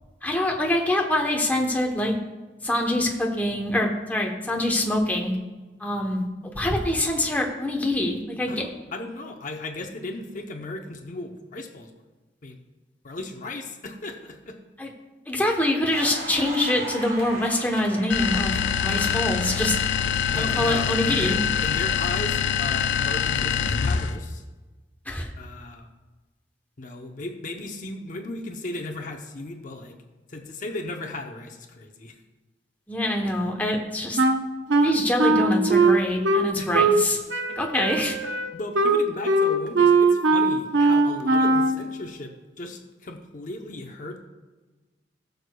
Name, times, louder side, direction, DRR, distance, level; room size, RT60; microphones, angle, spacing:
voice 1, 0.2-2.1 2.6-5.3 5.8-8.6 14.8-14.9 15.3-19.7 20.3-21.4 25.1-25.3 32.9-34.2 34.7-37.2 37.6-38.2, left 1 dB, 10° left, 0 dB, 0.9 m, -25 dB
voice 2, 8.5-11.9 12.4-12.6 13.0-14.6 20.3-21.4 21.6-24.4 25.4-25.9 26.8-30.0 30.3-32.2 36.6-36.7 38.5-42.3 42.6-44.2, left 2 dB, 45° left, 3 dB, 0.7 m, -36 dB
Crackle, 15.8-21.7 21.9-23.7, right 2 dB, 55° right, 2.5 m, -39 dB
sound 1, 18.1-24.2, left 7 dB, 85° left, 0.5 m, -25 dB
Wind instrument woodwind instrument, 34.2-37.0 37.3-41.8, right 3 dB, 75° right, 0.7 m, -20 dB
19.5 x 6.5 x 2.3 m, 1.2 s
head